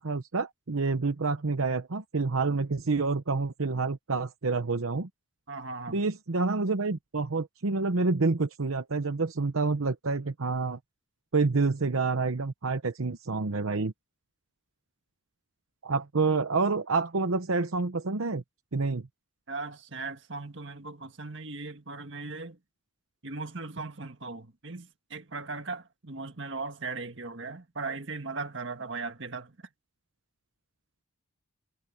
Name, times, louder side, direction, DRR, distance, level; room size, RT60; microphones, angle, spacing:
voice 1, 0.0-5.1 5.9-10.8 11.3-13.9 15.8-18.4 18.7-19.0, right 3 dB, 80° right, 0.9 m, -28 dB
voice 2, 5.5-6.0 19.5-22.6 23.2-29.6, right 3 dB, 60° right, 1.8 m, -38 dB
head